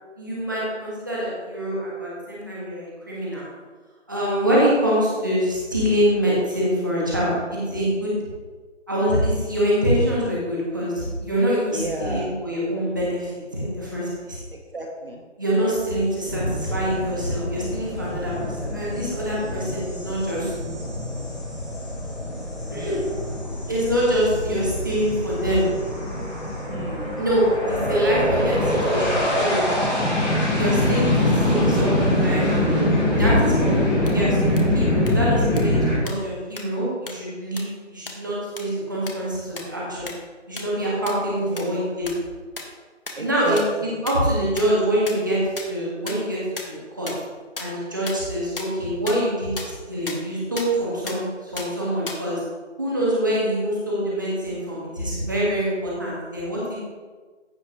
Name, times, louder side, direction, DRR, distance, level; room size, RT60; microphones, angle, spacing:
voice 1, 0.2-3.5 4.1-8.1 8.9-14.4 15.4-20.5 22.7-23.0 23.7-25.6 27.1-29.6 30.5-32.5 33.1-40.1 40.5-42.1 43.2-45.4 45.7-47.1 47.6-52.4 52.8-56.8, equal, 15° right, -6 dB, 1.4 m, -25 dB
voice 2, 11.7-12.3 14.5-15.2 26.7-27.1 41.4-41.8 43.1-43.9, right 1 dB, 50° right, 2 dB, 1.1 m, -32 dB
sound 1, 16.2-35.9, left 1 dB, 5° left, 2.6 m, -24 dB
sound 2, 34.1-34.2 34.6-34.7 35.1-35.2 35.6-35.7 36.1-36.2 36.6-36.7 37.1-37.2 37.6-37.7 38.1-38.2 38.6-38.7 39.1-39.2 39.6-39.7 40.1-40.2 40.6-40.7 41.1-41.2 41.6-41.7 42.1-42.2 42.6-42.7 43.1-43.2 43.6-43.7 44.1-44.2 44.6-44.7 45.0-45.1 45.6-45.7 46.1-46.2 46.6-46.7 47.1-47.2 47.6-47.7 48.1-48.2 48.6-48.7 49.1-49.2 49.6-49.7 50.1-50.2 50.6-50.7 51.1-51.2 51.6-51.7 52.1-52.2, left 3 dB, 45° left, 1.5 m, -31 dB
15.0 x 5.7 x 3.0 m, 1.4 s
figure-of-eight pair, 175°, 37 cm